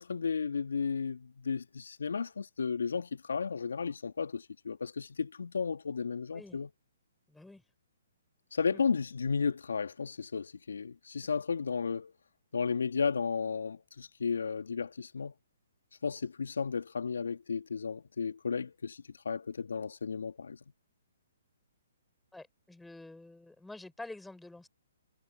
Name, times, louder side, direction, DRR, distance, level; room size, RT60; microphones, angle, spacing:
voice 1, 0.0-6.7 8.5-12.1 12.5-15.3 16.0-20.6, left 5 dB, 70° left, 1.8 m, -34 dB
voice 2, 7.3-7.6 8.7-8.8 22.3-24.7, left 2 dB, 5° left, 6.2 m, -48 dB
figure-of-eight pair, 130°, 0 cm